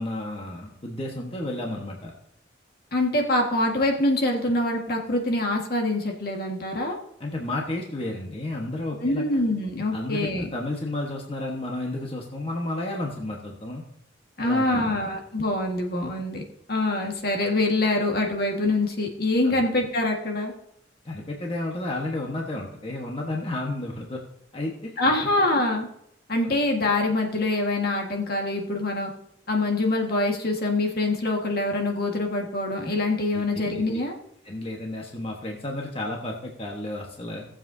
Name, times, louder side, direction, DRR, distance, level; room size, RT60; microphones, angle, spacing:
voice 1, 0.0-2.1 7.2-9.2 9.9-13.8 14.4-15.0 19.4-19.6 21.0-24.2 24.5-24.9 26.4-26.5 33.3-33.4 33.7-34.0 34.4-37.4, left 1 dB, 30° left, -1 dB, 1.2 m, -32 dB
voice 2, 2.9-7.0 8.9-10.5 14.4-16.4 16.7-20.5 25.0-25.9 26.3-29.1 29.5-34.1, left 2 dB, 55° left, 1 dB, 1.6 m, -25 dB
18.5 x 7.5 x 2.7 m, 0.73 s
head